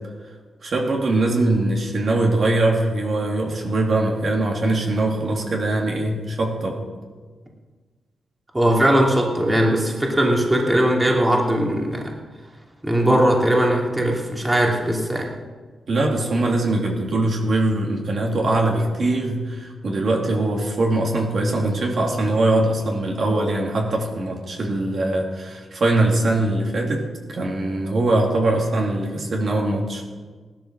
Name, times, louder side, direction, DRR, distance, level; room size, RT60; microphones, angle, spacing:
voice 1, 0.6-6.9 15.9-30.0, right 2 dB, 50° right, 0 dB, 2.8 m, -22 dB
voice 2, 8.5-12.1 12.8-15.3, right 1 dB, 15° right, -1 dB, 2.7 m, -19 dB
17.5 x 12.5 x 6.4 m, 1.4 s
wide cardioid pair, 130°, 0 cm